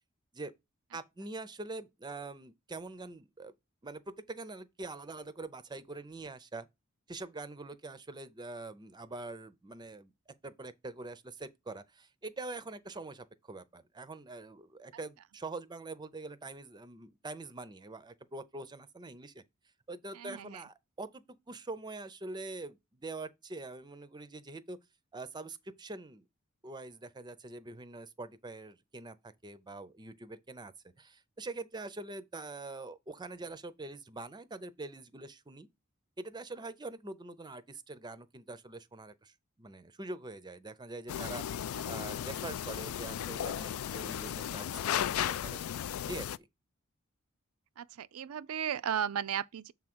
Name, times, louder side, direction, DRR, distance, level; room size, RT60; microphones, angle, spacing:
voice 1, 0.9-3.5 3.8-6.7 7.1-10.1 10.4-19.4 19.9-24.8 25.1-26.2 26.6-30.7 31.0-35.7 36.2-41.4 41.9-45.7 46.1-46.5, right 2 dB, 20° right, 0.5 m, -44 dB
voice 2, 20.1-20.6 45.4-45.5 47.8-49.7, right 8 dB, 85° right, 0.4 m, -35 dB
sound 1, 41.1-46.4, left 10 dB, 75° left, 0.3 m, -35 dB
7.1 x 3.7 x 6.0 m
head